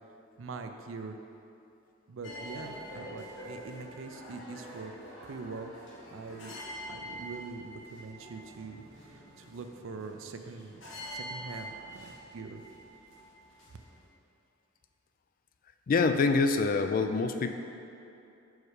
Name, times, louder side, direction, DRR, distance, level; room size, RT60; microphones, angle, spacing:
voice 1, 0.4-1.2 2.1-4.9 5.2-5.7 6.1-6.5 6.9-12.6, right 4 dB, 75° right, 6 dB, 0.4 m, -43 dB
sound 1, 2.2-14.0, equal, 65° left, 1.2 m, -46 dB
voice 2, 15.9-17.5, left 4 dB, 45° left, 7 dB, 0.3 m, -25 dB
5.5 x 4.8 x 4.8 m, 2.7 s
head